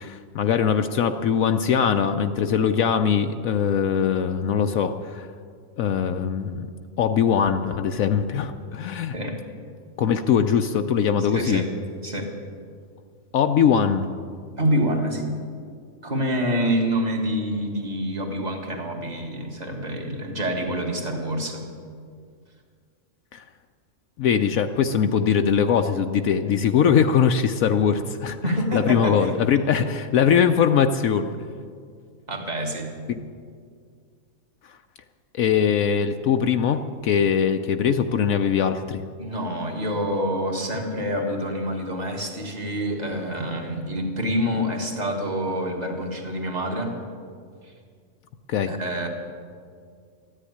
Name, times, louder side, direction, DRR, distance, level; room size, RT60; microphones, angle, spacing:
voice 1, 0.0-5.3 5.8-6.7 7.0-9.1 10.0-11.6 13.3-14.1 23.3-23.4 24.2-31.3 33.1-33.2 35.3-39.0 48.5-48.7, left 7 dB, 70° left, 7 dB, 1.0 m, -21 dB
voice 2, 11.2-11.7 12.0-12.3 14.6-15.3 16.0-21.6 28.4-29.4 32.3-32.9 39.2-47.0 47.6-47.7 48.7-49.1, equal, 30° right, 2 dB, 2.0 m, -27 dB
14.0 x 10.0 x 9.7 m, 2.1 s
omnidirectional pair, 1.5 m